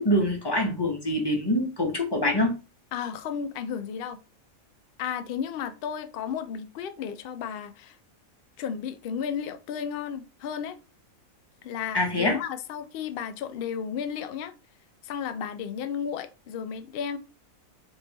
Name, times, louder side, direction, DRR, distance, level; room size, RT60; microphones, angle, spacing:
voice 1, 0.0-2.5 11.9-12.4, left 1 dB, 25° left, 0.7 m, -25 dB
voice 2, 2.9-4.2 5.0-8.0 8.6-10.8 11.6-14.5 15.0-17.2, left 7 dB, 70° left, 0.5 m, -33 dB
4.6 x 2.9 x 2.8 m
omnidirectional pair, 1.5 m